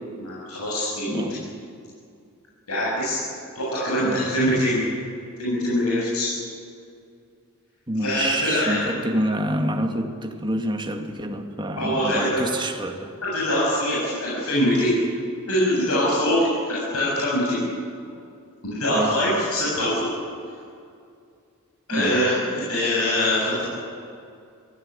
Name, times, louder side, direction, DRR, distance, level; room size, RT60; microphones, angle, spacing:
voice 1, 0.2-1.2 2.7-3.2 3.5-4.8 5.4-6.3 8.0-8.8 11.8-12.4 13.2-15.0 15.5-17.6 18.6-20.1 21.9-23.6, left 1 dB, 85° left, -6 dB, 8.0 m, -23 dB
voice 2, 1.1-1.5 4.0-4.3 7.9-13.1 18.9-19.2 21.9-22.2, right 1 dB, 20° right, 4 dB, 2.1 m, -27 dB
25.5 x 17.5 x 9.9 m, 2.3 s
head